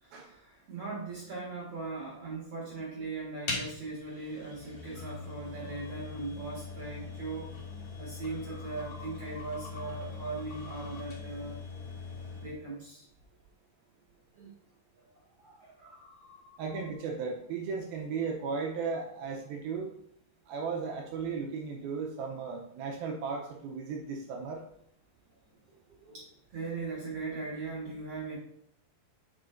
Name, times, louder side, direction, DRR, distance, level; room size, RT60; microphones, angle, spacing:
voice 1, 0.0-7.5 8.0-11.6 12.3-13.0 14.3-14.5 15.0-15.1 15.4-16.8 20.8-20.9 25.7-26.3 26.5-28.4, right 3 dB, 55° right, -5 dB, 1.7 m, -40 dB
sound 1, 3.4-12.6, left 4 dB, 50° left, 2.4 m, -41 dB
voice 2, 16.6-19.9 20.5-24.6, right 5 dB, 80° right, 1 dB, 2.2 m, -35 dB
8.6 x 5.6 x 2.5 m, 0.70 s
omnidirectional pair, 4.9 m